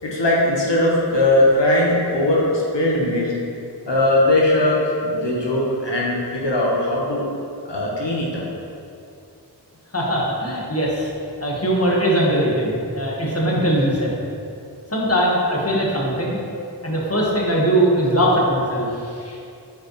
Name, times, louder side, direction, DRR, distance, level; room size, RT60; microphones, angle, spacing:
voice 1, 0.0-3.3 3.9-7.3 7.6-8.4, left 1 dB, 85° left, -4 dB, 1.1 m, -19 dB
voice 2, 9.9-11.1 11.4-14.1 14.9-16.4 16.8-19.4, right 1 dB, 35° left, -4 dB, 1.5 m, -20 dB
8.8 x 5.4 x 3.1 m, 2.5 s
wide cardioid pair, 40°, 42 cm